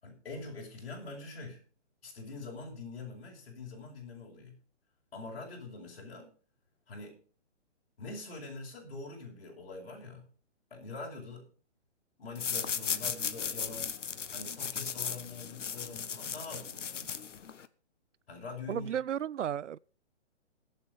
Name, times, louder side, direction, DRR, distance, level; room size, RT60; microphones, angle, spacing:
voice 1, 0.0-1.6 2.0-4.6 5.1-6.3 6.9-7.2 8.0-10.3 10.7-11.5 12.2-13.9 14.3-17.3 18.3-18.9, left 3 dB, 50° left, 6.4 m, -44 dB
sound 1, 12.4-17.7, left 7 dB, 85° left, 1.2 m, -36 dB
voice 2, 18.7-19.8, right 9 dB, 80° right, 0.6 m, -33 dB
17.5 x 7.9 x 5.3 m
hypercardioid pair, 175°, 36 cm